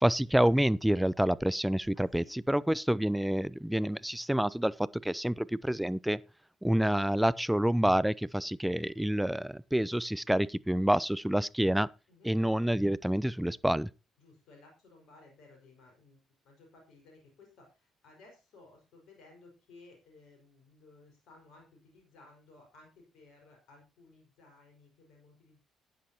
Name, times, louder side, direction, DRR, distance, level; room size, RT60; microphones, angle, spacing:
voice 1, 0.0-4.7 5.0-6.2 6.6-11.9 12.2-13.9, right 1 dB, 5° right, 0.6 m, -28 dB
voice 2, 1.9-2.4 12.1-12.4 14.2-16.2 16.4-25.6, left 3 dB, 65° left, 5.2 m, -58 dB
15.0 x 10.0 x 2.9 m
hypercardioid pair, 50°, 0 cm